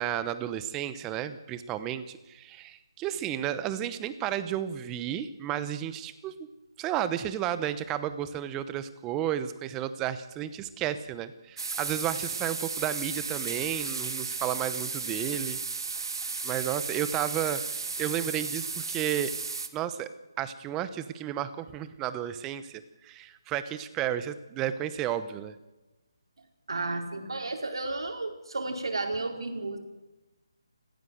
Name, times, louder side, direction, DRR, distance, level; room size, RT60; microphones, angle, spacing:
voice 1, 0.0-6.5 6.8-15.6 16.4-17.6 18.0-19.3 19.7-20.1 20.4-25.5, right 11 dB, 10° right, 13 dB, 0.9 m, -32 dB
sound 1, 11.6-19.7, right 4 dB, 65° right, 2.5 m, -34 dB
voice 2, 26.7-29.8, right 2 dB, 80° right, 4 dB, 4.8 m, -32 dB
28.5 x 15.5 x 8.0 m, 1.1 s
hypercardioid pair, 170°, 3 cm